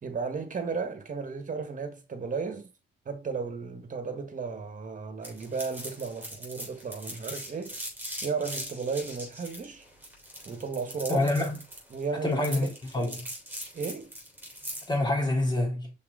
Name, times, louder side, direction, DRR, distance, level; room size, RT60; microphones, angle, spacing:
voice 1, 0.0-2.7 3.0-7.8 8.2-9.8 10.4-11.3 11.9-12.7 13.7-14.1, right 5 dB, 40° right, 1.5 m, -34 dB
sound 1, 5.2-14.9, right 1 dB, 10° right, 3.6 m, -40 dB
voice 2, 11.1-11.6 12.2-12.7 12.9-13.3 14.9-15.9, left 2 dB, 20° left, 2.9 m, -26 dB
5.8 x 4.3 x 3.7 m
cardioid pair, 90°, 20 cm